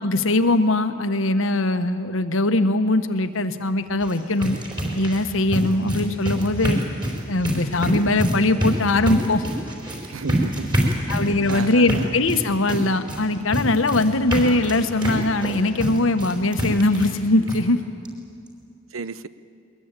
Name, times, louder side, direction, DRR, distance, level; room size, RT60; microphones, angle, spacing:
voice 1, 0.0-4.6 4.9-6.8 7.3-9.4 11.1-17.8, left 2 dB, 70° left, 9 dB, 1.3 m, -21 dB
sound 1, 3.9-17.2 17.5-17.6 18.1-18.2 18.5-18.6, equal, 25° right, 4.3 m, -27 dB
voice 2, 10.1-11.2 11.5-12.1 18.9-19.3, right 4 dB, 85° right, 15 dB, 0.8 m, -33 dB
22.5 x 21.0 x 9.1 m, 2.4 s
head